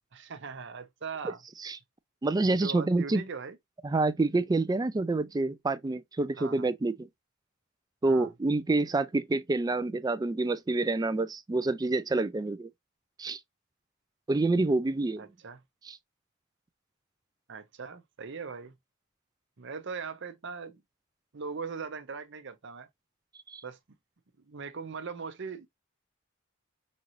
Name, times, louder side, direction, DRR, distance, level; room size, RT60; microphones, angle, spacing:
voice 1, 0.1-1.4 2.5-3.6 6.4-6.7 8.0-8.3 15.2-15.6 17.5-18.7 19.6-20.8 21.3-22.9 23.6-23.8 24.5-25.7, right 5 dB, 60° right, 0.7 m, -40 dB
voice 2, 2.2-3.2 3.8-7.1 8.0-12.7 13.2-13.4 14.3-15.3 15.9-16.0 23.5-23.6, right 2 dB, 20° right, 0.3 m, -27 dB
5.2 x 2.6 x 3.0 m
head